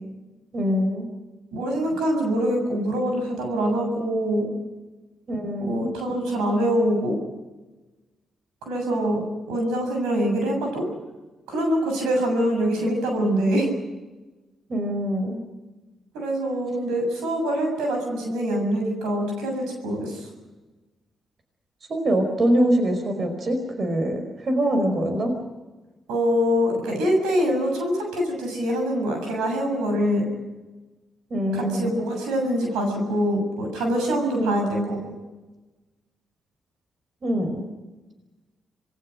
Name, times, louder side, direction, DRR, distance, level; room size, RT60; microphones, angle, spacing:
voice 1, 0.5-1.1 5.3-5.9 14.7-15.4 21.9-25.3 31.3-32.0 34.3-35.1 37.2-37.7, equal, 55° right, 6 dB, 5.0 m, -24 dB
voice 2, 1.5-4.5 5.6-7.2 8.6-9.2 9.5-10.9 11.5-13.7 16.1-20.3 26.1-30.3 31.5-35.0, equal, 85° right, 2 dB, 7.1 m, -24 dB
27.0 x 21.5 x 6.6 m, 1.2 s
supercardioid pair, 50°, 0 cm